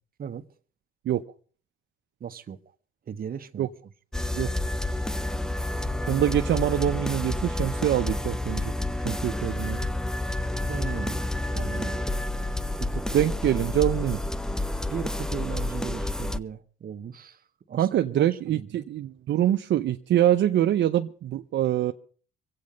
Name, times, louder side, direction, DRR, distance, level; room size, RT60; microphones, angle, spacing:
voice 1, 2.2-2.6 3.1-3.7 10.7-11.3 11.5-12.1 12.8-13.1 14.9-17.4 17.7-18.8, right 7 dB, 45° right, 1.2 m, -37 dB
sound 1, 4.1-16.4, left 1 dB, 5° left, 0.6 m, -29 dB
voice 2, 6.1-8.7 9.0-9.9 13.1-14.2 17.8-21.9, right 12 dB, 65° right, 0.7 m, -24 dB
24.0 x 8.6 x 5.2 m
cardioid pair, 90°, 20 cm